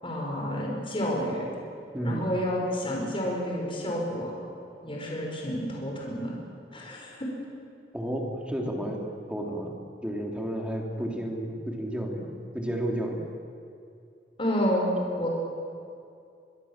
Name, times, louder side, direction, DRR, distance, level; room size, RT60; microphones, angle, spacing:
voice 1, 0.0-1.4 2.0-4.3 4.8-6.3 6.7-7.3 14.4-15.3, equal, 30° left, -1 dB, 5.4 m, -29 dB
voice 2, 1.9-2.3 7.9-9.0 9.3-9.8 10.0-13.2, right 1 dB, 5° right, 0 dB, 3.1 m, -32 dB
24.0 x 23.0 x 7.4 m, 2.4 s
head